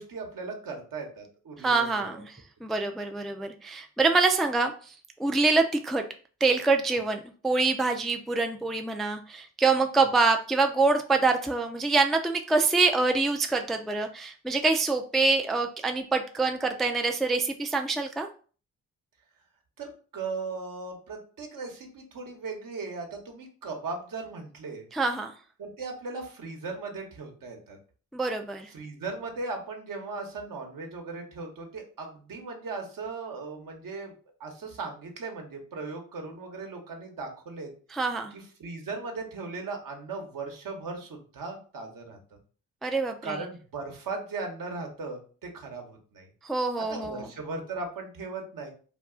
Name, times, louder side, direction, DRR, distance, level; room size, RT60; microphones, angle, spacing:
voice 1, 0.0-2.1 6.9-7.0 19.8-24.9 25.6-27.8 28.7-34.1 34.4-37.7 38.3-42.2 43.2-46.3 46.9-48.7, right 3 dB, 65° right, 3 dB, 1.0 m, -38 dB
voice 2, 1.6-2.2 2.6-4.9 5.2-6.0 6.4-18.3 24.9-25.3 28.1-28.7 37.9-38.3 42.8-43.3 46.4-47.3, right 3 dB, ahead, 5 dB, 0.3 m, -25 dB
2.4 x 2.3 x 3.7 m, 0.39 s
supercardioid pair, 45°, 36 cm